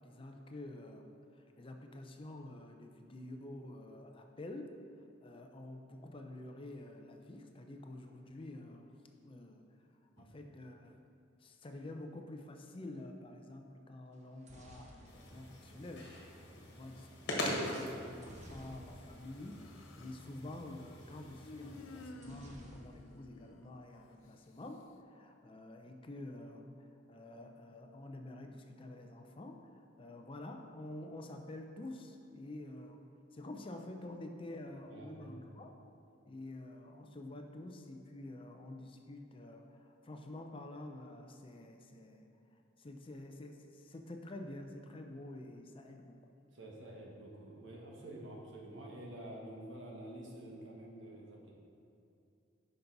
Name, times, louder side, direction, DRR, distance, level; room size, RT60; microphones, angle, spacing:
voice 1, 0.0-4.8 5.2-8.9 9.2-9.7 10.2-11.0 11.4-35.7 36.2-46.3, left 1 dB, 25° left, 4 dB, 0.5 m, -49 dB
sound 1, 14.1-16.2 18.2-19.3 19.6-19.8 20.0-20.3 22.2-23.3 23.6-24.3, equal, 35° right, 0.9 m, -56 dB
sound 2, 15.1-22.1, left 1 dB, 60° left, 1.5 m, -43 dB
Human voice, 19.3-20.3 21.4-24.2, left 2 dB, 85° left, 0.5 m, -53 dB
voice 2, 34.9-35.4 46.5-51.5, right 1 dB, 70° right, -2 dB, 1.5 m, -49 dB
10.5 x 5.4 x 3.9 m, 2.6 s
head